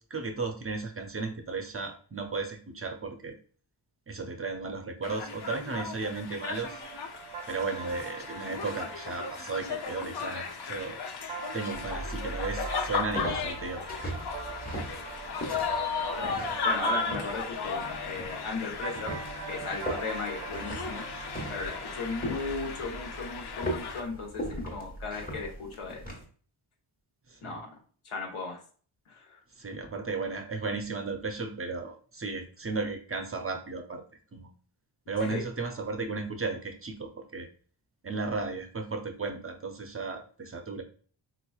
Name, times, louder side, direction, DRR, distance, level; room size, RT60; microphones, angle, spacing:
voice 1, 0.1-3.4 4.1-6.8 7.5-11.0 11.5-14.1 21.4-21.5 27.3-27.6 29.5-34.0 34.3-34.5 35.1-37.5 38.0-40.8, right 4 dB, 30° right, 5 dB, 0.5 m, -35 dB
sound 1, 5.0-24.0, left 5 dB, 50° left, 0.7 m, -36 dB
sound 2, 6.5-22.9, right 7 dB, 75° right, 0.6 m, -43 dB
sound 3, 11.7-26.2, equal, 15° left, 1.2 m, -39 dB
voice 2, 16.6-19.2 19.5-21.1 21.5-26.0 27.4-27.7 28.0-28.6 29.1-29.4 35.2-35.4, left 4 dB, 80° left, 1 dB, 1.1 m, -36 dB
4.0 x 2.9 x 2.3 m, 0.42 s
cardioid pair, 75°, 50 cm